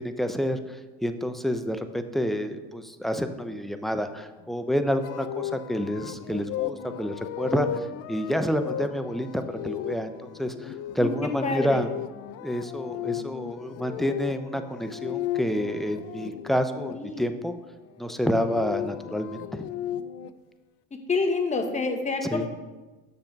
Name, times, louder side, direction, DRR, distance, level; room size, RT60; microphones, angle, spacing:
voice 1, 0.0-11.9 12.4-17.5 18.0-19.7 22.3-22.5, equal, ahead, 8 dB, 0.6 m, -29 dB
sound 1, 5.0-16.9 18.1-20.3, left 11 dB, 50° left, 0.5 m, -35 dB
voice 2, 11.0-11.8 16.9-17.2 20.9-22.5, left 3 dB, 25° left, 5 dB, 1.3 m, -28 dB
6.6 x 5.9 x 5.2 m, 1.2 s
hypercardioid pair, 80°, 30 cm